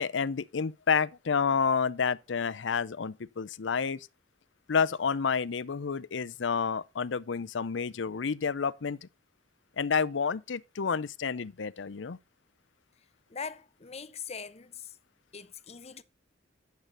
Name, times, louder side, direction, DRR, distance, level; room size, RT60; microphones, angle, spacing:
voice 1, 0.0-4.1 4.7-9.0 9.8-12.2, left 6 dB, 80° left, 0.6 m, -29 dB
voice 2, 13.3-14.9 15.3-16.0, left 6 dB, 35° left, 0.8 m, -41 dB
10.5 x 8.3 x 3.9 m
head